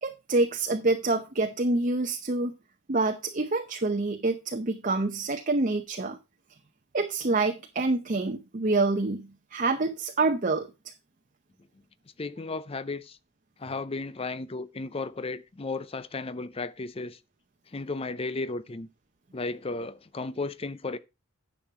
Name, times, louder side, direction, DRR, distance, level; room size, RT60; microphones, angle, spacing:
voice 1, 0.0-2.5 2.9-6.2 6.9-10.7, right 3 dB, 35° right, 0.7 m, -27 dB
voice 2, 12.2-13.2 13.6-17.2 17.7-18.9 19.3-21.0, left 3 dB, 25° left, 0.5 m, -34 dB
10.5 x 6.3 x 4.4 m
head